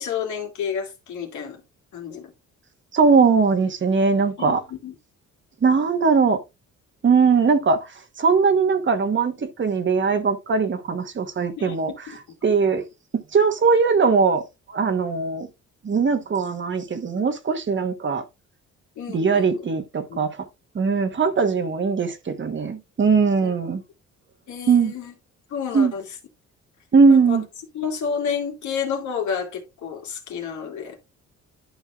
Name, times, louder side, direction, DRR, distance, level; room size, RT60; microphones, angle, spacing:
voice 1, 0.0-1.6 1.9-2.3 4.4-4.9 11.6-11.8 12.1-12.2 19.0-19.6 20.1-20.2 23.4-23.5 24.5-25.1 25.5-26.2 27.1-27.4 27.7-31.0, left 7 dB, 75° left, 2.3 m, -30 dB
voice 2, 2.9-4.6 5.6-6.4 7.0-7.9 8.2-11.9 12.4-12.8 13.3-14.4 14.7-15.5 15.8-18.2 19.1-20.4 20.7-23.8 24.7-24.9 25.7-25.9 26.9-27.4, right 5 dB, 40° right, 1.2 m, -20 dB
11.5 x 5.4 x 2.4 m
cardioid pair, 90°, 30 cm